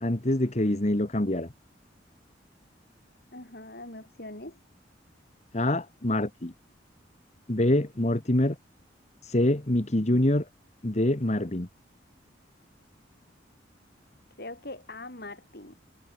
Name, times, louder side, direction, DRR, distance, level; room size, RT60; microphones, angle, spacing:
voice 1, 0.0-1.5 5.5-6.5 7.5-8.6 9.2-10.4 10.8-11.7, left 1 dB, 35° left, 1.5 m, -25 dB
voice 2, 3.3-4.6 14.4-15.8, left 2 dB, 55° left, 6.1 m, -42 dB
head